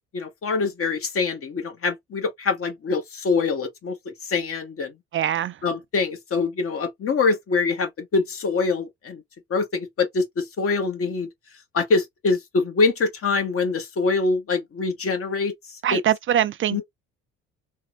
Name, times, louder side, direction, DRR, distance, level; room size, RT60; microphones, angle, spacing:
voice 1, 0.1-4.9 5.6-9.2 9.5-11.3 11.7-16.0 16.7-16.8, left 4 dB, 50° left, 1.5 m, -24 dB
voice 2, 5.1-5.5 15.8-16.8, right 11 dB, 45° right, 0.4 m, -22 dB
3.4 x 2.2 x 3.1 m
supercardioid pair, 70°, 29 cm